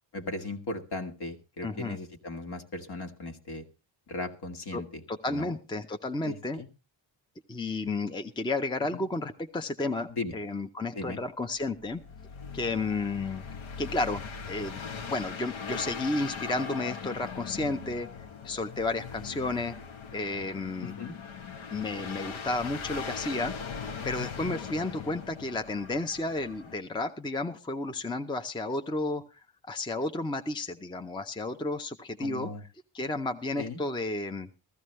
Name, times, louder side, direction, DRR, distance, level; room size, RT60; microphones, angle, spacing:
voice 1, 0.1-3.6 4.1-5.0 5.3-5.6 6.2-6.7 8.9-9.0 10.1-10.3 10.9-11.2 20.8-21.1 32.2-32.6 33.6-33.8, left 2 dB, 55° left, 5 dB, 1.6 m, -37 dB
voice 2, 1.6-2.0 4.7-4.8 5.1-6.6 7.5-12.0 12.5-13.4 13.8-18.1 18.4-19.8 20.1-20.9 21.7-23.5 24.0-29.2 29.7-32.5 32.9-34.5, left 2 dB, 10° left, 7 dB, 0.6 m, -32 dB
sound 1, 11.6-26.8, left 6 dB, 85° left, 1.2 m, -40 dB
15.0 x 14.0 x 3.2 m, 0.29 s
wide cardioid pair, 145°, 46 cm